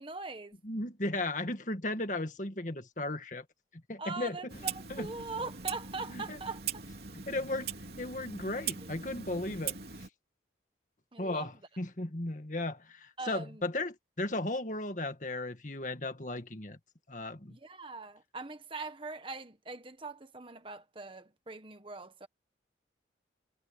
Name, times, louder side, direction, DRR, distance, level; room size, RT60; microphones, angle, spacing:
voice 1, 0.0-0.6 4.0-6.8 8.8-8.9 11.1-11.5 13.2-13.6 17.5-22.3, right 3 dB, 30° right, 1.4 m, -42 dB
voice 2, 0.6-3.4 3.9-4.5 4.9-5.1 6.1-6.4 7.3-7.7 8.0-9.8 11.2-16.8 17.1-17.6, left 2 dB, 45° left, 2.0 m, -35 dB
Clock, 4.5-10.1, right 7 dB, 60° right, 3.3 m, -41 dB
head